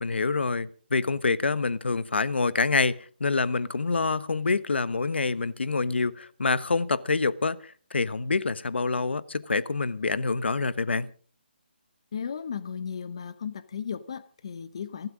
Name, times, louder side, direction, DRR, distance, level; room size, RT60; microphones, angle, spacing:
voice 1, 0.0-11.1, left 4 dB, 80° left, 1.2 m, -26 dB
voice 2, 12.1-15.1, left 7 dB, 30° left, 0.8 m, -35 dB
29.5 x 12.0 x 3.8 m
hypercardioid pair, 180°, 6 cm